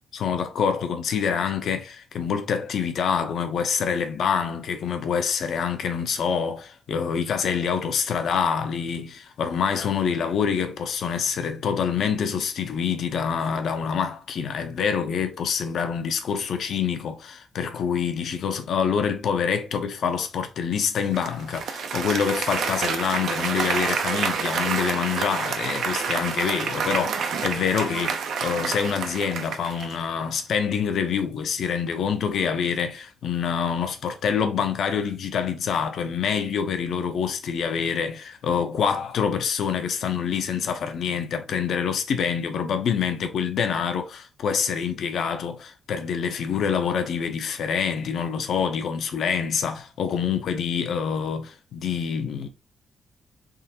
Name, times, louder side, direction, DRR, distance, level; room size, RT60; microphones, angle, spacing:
voice 1, 0.1-52.5, left 7 dB, 65° left, 0.7 m, -26 dB
Applause, 21.1-30.1, right 6 dB, 70° right, 0.6 m, -28 dB
3.7 x 3.2 x 2.8 m
wide cardioid pair, 175°, 0 cm